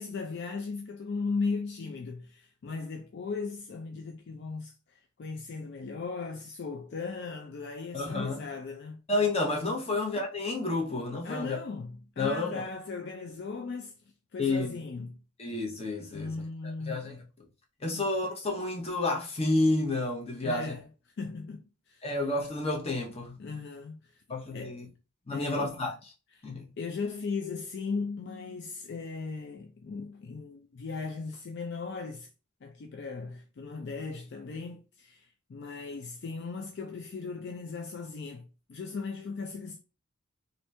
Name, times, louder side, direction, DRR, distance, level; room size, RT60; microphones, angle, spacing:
voice 1, 0.0-9.0 9.9-10.0 11.2-13.9 14.3-15.2 16.1-17.2 17.9-18.0 20.4-20.8 21.2-22.1 23.4-24.2 24.5-24.8 25.3-25.7 26.4-26.5 26.8-32.3 32.6-39.8, left 4 dB, 55° left, 0.4 m, -37 dB
voice 2, 7.9-8.4 9.1-11.6 12.2-12.6 14.4-14.8 15.4-16.3 16.6-17.2 17.8-20.7 22.0-23.4 24.3-24.9 25.3-26.1 26.4-26.7, left 2 dB, 30° left, 0.8 m, -30 dB
2.9 x 2.6 x 3.2 m
head